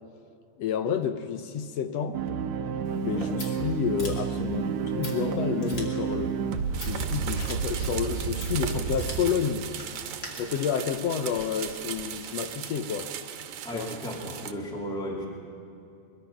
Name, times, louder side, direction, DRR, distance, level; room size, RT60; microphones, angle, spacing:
voice 1, 0.6-2.2 3.0-6.4 6.8-9.7 10.4-13.1 13.7-13.9, left 7 dB, 70° left, 9 dB, 1.8 m, -30 dB
sound 1, 2.1-9.3, right 6 dB, 75° right, 2.0 m, -30 dB
Scissors, 2.8-10.3, left 2 dB, 35° left, 3.2 m, -45 dB
sound 2, 6.7-14.5, right 9 dB, 90° right, 2.4 m, -38 dB
voice 2, 13.6-15.3, equal, ahead, -2 dB, 2.3 m, -34 dB
23.0 x 21.5 x 5.9 m, 2.6 s
omnidirectional pair, 3.3 m